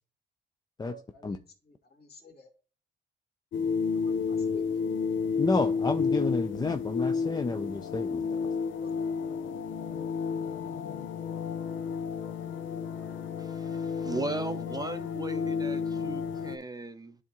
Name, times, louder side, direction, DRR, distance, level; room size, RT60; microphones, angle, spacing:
voice 1, 0.8-1.4 1.7-2.5 3.9-4.2 4.5-4.8 8.8-8.9, left 2 dB, 55° left, 2.1 m, -50 dB
sound 1, 3.5-16.6, left 5 dB, 75° left, 0.7 m, -31 dB
voice 2, 5.4-8.3, left 3 dB, 20° left, 0.5 m, -30 dB
voice 3, 13.4-17.2, right 3 dB, 20° right, 0.7 m, -37 dB
11.0 x 3.6 x 3.0 m
cardioid pair, 90°, 20 cm